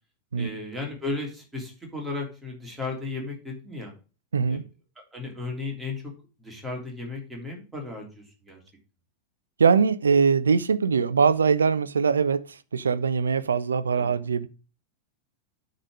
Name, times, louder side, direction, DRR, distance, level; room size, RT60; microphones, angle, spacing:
voice 1, 0.4-3.9 4.5-4.6 4.9-6.0 6.4-8.6 14.0-14.1, left 3 dB, 10° right, 3.1 m, -35 dB
voice 2, 9.6-14.5, right 5 dB, 70° right, 0.6 m, -22 dB
9.8 x 4.0 x 6.1 m
figure-of-eight pair, 90°, 0 cm